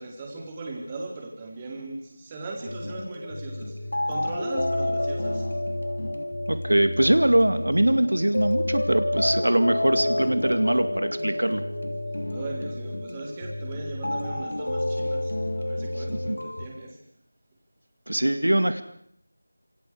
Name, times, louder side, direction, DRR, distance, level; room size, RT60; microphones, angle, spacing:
voice 1, 0.0-5.5 12.3-17.0, right 2 dB, 15° right, 0 dB, 4.1 m, -38 dB
sound 1, 2.6-16.7, left 1 dB, 80° left, 3.2 m, -29 dB
voice 2, 6.5-11.6 16.3-16.4 18.1-18.8, right 1 dB, 85° right, 10 dB, 2.2 m, -22 dB
27.5 x 25.5 x 5.1 m, 0.68 s
figure-of-eight pair, 170°, 0 cm